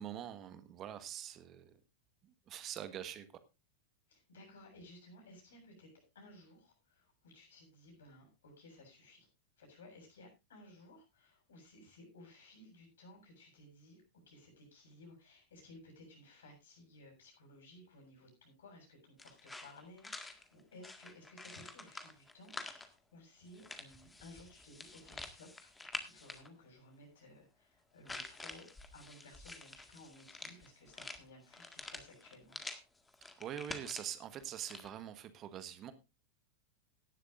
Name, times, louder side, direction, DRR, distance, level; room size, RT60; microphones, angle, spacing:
voice 1, 0.0-1.7 2.5-3.3 33.4-35.9, right 10 dB, 30° right, 1.3 m, -44 dB
voice 2, 4.1-9.3 9.6-28.7 28.9-32.6, left 1 dB, 65° left, 7.2 m, -58 dB
sound 1, 19.2-22.9 23.5-26.5 28.0-32.8 33.1-34.9, left 2 dB, 10° left, 1.8 m, -48 dB
17.5 x 12.0 x 2.5 m
figure-of-eight pair, 90°, 0 cm